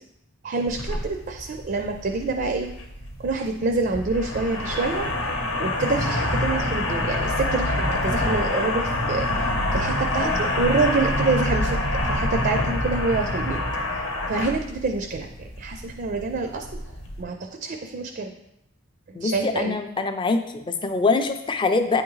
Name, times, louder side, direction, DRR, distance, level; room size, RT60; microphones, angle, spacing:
voice 1, 0.4-2.7 3.2-11.8 12.0-13.6 14.3-16.7 17.2-18.3 19.1-19.7, right 3 dB, 45° right, 5 dB, 0.4 m, -27 dB
sound 1, 0.7-17.2, left 1 dB, 85° left, 0.9 m, -26 dB
voice 2, 19.1-22.0, left 3 dB, 25° left, 7 dB, 0.4 m, -24 dB
8.8 x 3.6 x 3.1 m, 0.82 s
head